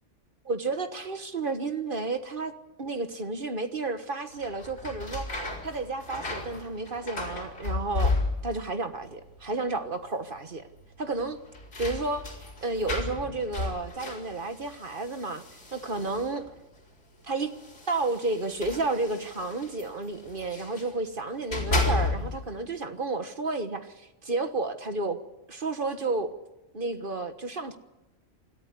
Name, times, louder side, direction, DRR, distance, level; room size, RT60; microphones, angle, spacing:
voice 1, 0.4-2.5 2.8-5.3 5.6-8.2 8.4-10.6 11.0-11.4 11.8-12.2 12.6-15.4 15.7-16.4 17.2-17.5 17.9-25.2 25.5-26.3 26.7-27.8, right 3 dB, 45° right, 1.6 m, -31 dB
sound 1, 4.3-8.7 9.0-9.7 10.0-10.1 11.2-16.6 17.4-20.9 21.3-22.5, left 2 dB, 65° left, 4.5 m, -33 dB
26.5 x 14.0 x 9.8 m
omnidirectional pair, 1.3 m